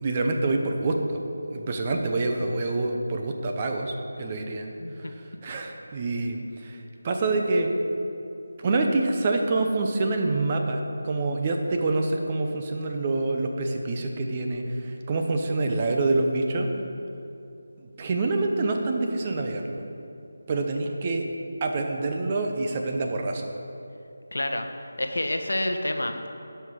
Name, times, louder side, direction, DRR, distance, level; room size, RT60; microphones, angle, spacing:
voice 1, 0.0-1.2 1.5-3.9 4.2-4.7 5.4-6.8 7.0-7.7 8.6-16.7 17.8-19.8 20.5-21.2 21.6-23.5, right 2 dB, 30° right, 3 dB, 0.7 m, -26 dB
voice 2, 4.8-5.1 24.3-26.3, left 1 dB, 85° left, 6 dB, 0.8 m, -29 dB
10.5 x 5.7 x 4.8 m, 2.7 s
figure-of-eight pair, 165°, 0 cm